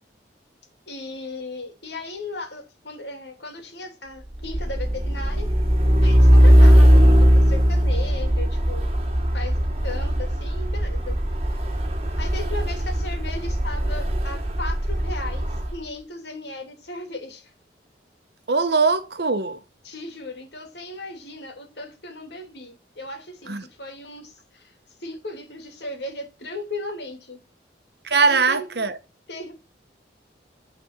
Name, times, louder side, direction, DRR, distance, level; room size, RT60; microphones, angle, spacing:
voice 1, 0.9-5.5 6.0-8.9 9.3-9.6 9.8-11.2 11.5-11.6 12.2-17.5 19.8-24.7 25.0-27.4 28.3-28.8 29.3-29.5, left 2 dB, 70° left, 2.5 m, -36 dB
Truck, 4.3-15.8, equal, 35° right, 1.6 m, -18 dB
voice 2, 18.5-19.6 23.5-23.7 28.0-29.0, right 4 dB, 60° right, 1.0 m, -21 dB
9.4 x 4.2 x 5.7 m
head